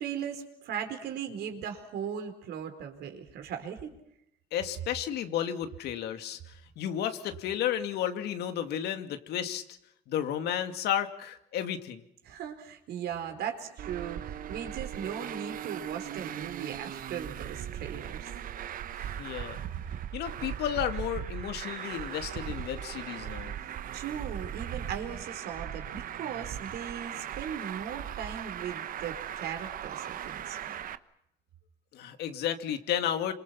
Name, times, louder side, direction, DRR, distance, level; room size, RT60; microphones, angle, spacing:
voice 1, 0.0-3.9 12.3-18.3 23.6-30.7, right 8 dB, 70° right, 6 dB, 4.6 m, -38 dB
voice 2, 4.5-9.6 10.1-12.0 19.2-19.6 20.1-23.6 31.9-33.3, left 10 dB, 75° left, 8 dB, 2.4 m, -32 dB
Traffic noise roadway noise, 13.8-31.0, right 10 dB, 55° right, 1.1 m, -38 dB
27.5 x 26.0 x 5.9 m, 0.78 s
cardioid pair, 110°, 17 cm